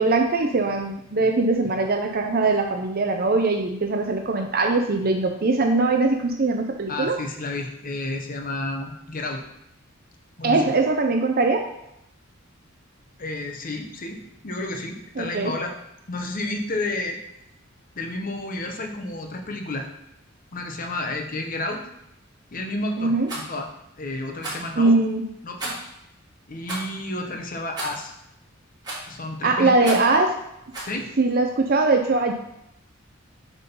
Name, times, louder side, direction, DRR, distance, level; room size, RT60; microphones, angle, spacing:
voice 1, 0.0-7.2 10.4-11.7 15.2-15.5 23.0-23.3 24.8-25.3 29.4-30.3 31.2-32.3, right 3 dB, 45° right, 3 dB, 0.6 m, -21 dB
voice 2, 6.9-9.4 10.4-10.7 13.2-15.7 16.1-17.2 17.9-19.9 20.5-21.8 22.5-23.7 24.0-25.0 25.4-25.8 26.5-28.1 29.1-30.0 30.9-31.1, left 2 dB, 40° left, 3 dB, 1.0 m, -31 dB
Rattle, 23.2-23.5 24.4-24.7 25.6-25.9 26.6-26.9 27.8-28.1 28.8-29.2 29.8-30.1 30.7-30.9, right 2 dB, 20° right, 2.4 m, -33 dB
8.1 x 3.8 x 5.4 m, 0.82 s
head